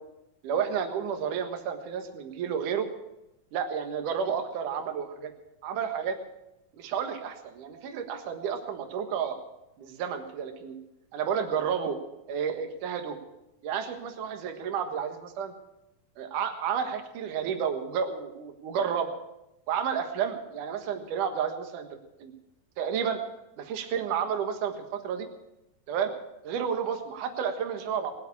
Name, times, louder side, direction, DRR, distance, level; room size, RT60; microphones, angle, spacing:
voice 1, 0.4-2.9 3.5-5.3 5.6-6.2 6.7-9.4 9.8-10.8 11.1-12.0 12.3-13.2 13.6-15.5 16.2-19.1 19.7-22.3 22.8-23.2 23.6-25.3 25.9-26.1 26.4-28.1, right 7 dB, 65° right, 6 dB, 2.8 m, -31 dB
21.5 x 7.8 x 8.5 m, 0.91 s
omnidirectional pair, 4.3 m